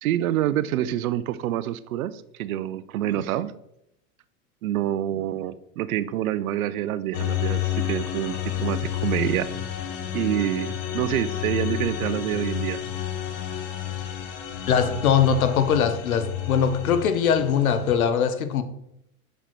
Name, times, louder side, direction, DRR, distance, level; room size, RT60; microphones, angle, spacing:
voice 1, 0.0-3.5 4.6-9.5 10.1-12.8, right 12 dB, 80° right, 0.6 m, -27 dB
sound 1, 7.1-17.9, left 11 dB, 65° left, 1.2 m, -30 dB
voice 2, 14.7-18.6, left 7 dB, 90° left, 0.8 m, -21 dB
5.6 x 5.0 x 4.4 m
hypercardioid pair, 110°, 42 cm